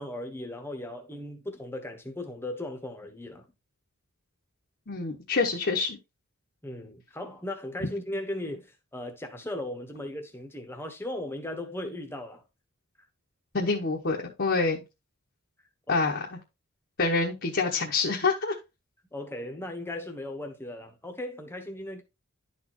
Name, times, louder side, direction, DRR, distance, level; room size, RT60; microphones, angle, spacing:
voice 1, 0.0-3.5 6.6-12.4 15.9-16.0 19.1-22.0, left 1 dB, 10° left, 1.2 m, -37 dB
voice 2, 4.9-6.0 13.5-14.8 15.9-16.3 17.0-18.5, left 4 dB, 50° left, 1.1 m, -26 dB
11.0 x 4.3 x 3.0 m
head